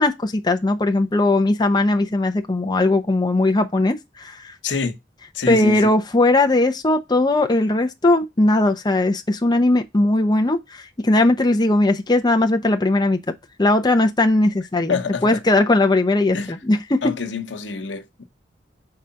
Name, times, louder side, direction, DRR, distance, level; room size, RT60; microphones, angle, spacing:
voice 1, 0.0-4.5 5.5-13.3 13.6-17.1, left 2 dB, 25° left, 0.7 m, -19 dB
voice 2, 4.6-5.0 5.3-5.9 14.9-15.4 16.3-16.6 17.0-18.2, left 5 dB, 90° left, 1.0 m, -26 dB
4.9 x 3.9 x 5.7 m
head